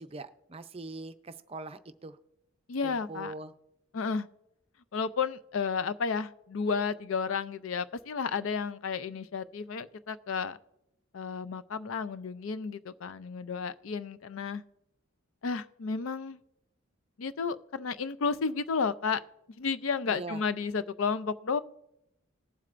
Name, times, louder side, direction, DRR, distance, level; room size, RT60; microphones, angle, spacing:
voice 1, 0.0-2.2 2.8-3.5 20.1-20.4, right 3 dB, 30° right, 10 dB, 0.5 m, -42 dB
voice 2, 2.7-3.3 3.9-4.3 4.9-10.6 11.1-14.6 15.4-16.4 17.2-19.2 19.6-21.6, left 5 dB, 80° left, 15 dB, 0.5 m, -32 dB
19.0 x 7.5 x 2.5 m, 0.85 s
head